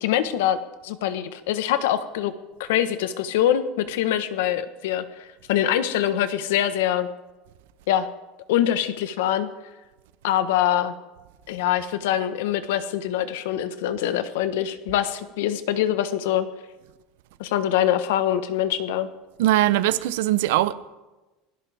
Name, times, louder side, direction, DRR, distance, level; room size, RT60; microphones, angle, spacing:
voice 1, 0.0-2.3 2.6-7.1 7.9-8.1 8.5-9.5 10.2-10.9 11.5-16.5 17.4-19.1, left 11 dB, 85° left, 1.2 m, -24 dB
voice 2, 19.4-20.7, right 15 dB, 80° right, 0.7 m, -20 dB
20.0 x 16.5 x 3.5 m
cardioid pair, 175°, 0 cm